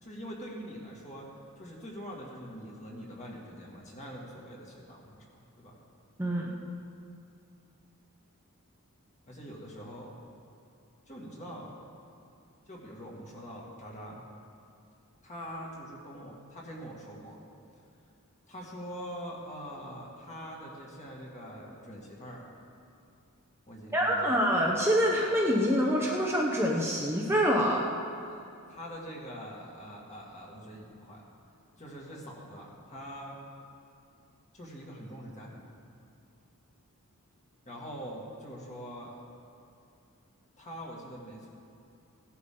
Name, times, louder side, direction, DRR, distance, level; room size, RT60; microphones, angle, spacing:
voice 1, 0.0-1.3 1.6-5.8 9.3-10.1 11.1-11.7 12.7-14.2 15.2-17.4 18.5-22.5 23.7-24.4 28.3-28.4 28.7-31.2 31.7-33.4 34.5-35.6 37.7-39.1 40.6-41.5, equal, 30° left, -3 dB, 2.2 m, -44 dB
voice 2, 6.2-6.5 23.9-27.9, equal, 10° right, -2 dB, 0.8 m, -26 dB
17.0 x 11.5 x 3.9 m, 2.6 s
head